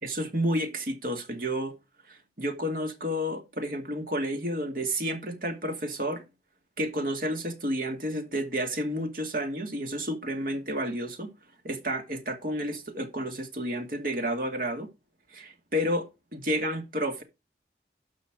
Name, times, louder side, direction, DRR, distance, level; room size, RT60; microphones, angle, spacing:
voice 1, 0.0-1.7 2.1-6.2 6.8-11.3 11.6-14.9 15.3-17.2, equal, 50° right, 2.4 m, -31 dB
12.5 x 6.2 x 5.0 m
head